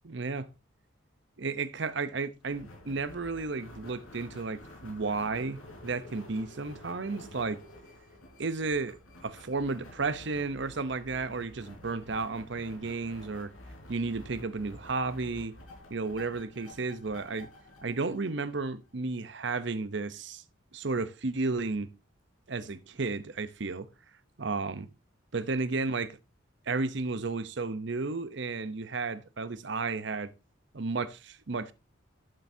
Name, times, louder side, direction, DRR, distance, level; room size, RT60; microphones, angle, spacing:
voice 1, 0.0-0.5 1.4-7.6 8.4-9.0 9.2-13.5 13.9-15.5 15.9-17.5 17.8-20.4 20.7-21.9 22.5-23.9 24.4-24.9 25.3-26.2 26.7-30.3 30.7-31.7, right 3 dB, 60° right, 0.7 m, -33 dB
sound 1, 2.4-18.9, left 1 dB, 85° left, 4.0 m, -50 dB
11.5 x 7.8 x 2.7 m
head